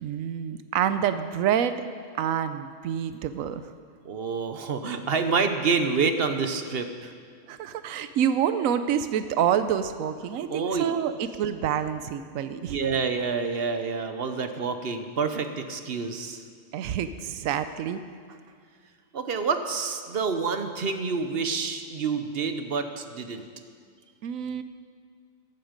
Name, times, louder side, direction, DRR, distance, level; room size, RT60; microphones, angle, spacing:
voice 1, 0.0-1.8 2.2-3.6 7.5-12.8 16.7-18.0 24.2-24.6, right 9 dB, 85° right, 11 dB, 1.0 m, -27 dB
voice 2, 4.0-7.1 10.5-11.1 12.6-16.4 19.1-23.4, right 5 dB, 50° right, 8 dB, 1.0 m, -28 dB
13.5 x 12.0 x 5.2 m, 2.1 s
omnidirectional pair, 1.4 m